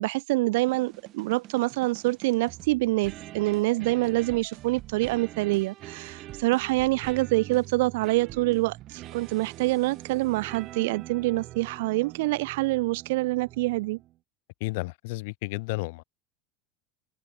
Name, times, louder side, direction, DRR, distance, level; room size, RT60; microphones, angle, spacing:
voice 1, 0.0-14.0, right 21 dB, 75° right, 1.6 m, -26 dB
sound 1, 0.7-14.2, right 15 dB, 50° right, 3.1 m, -44 dB
voice 2, 14.6-16.0, left 25 dB, 70° left, 2.4 m, -32 dB
open air
supercardioid pair, 120°, 0 cm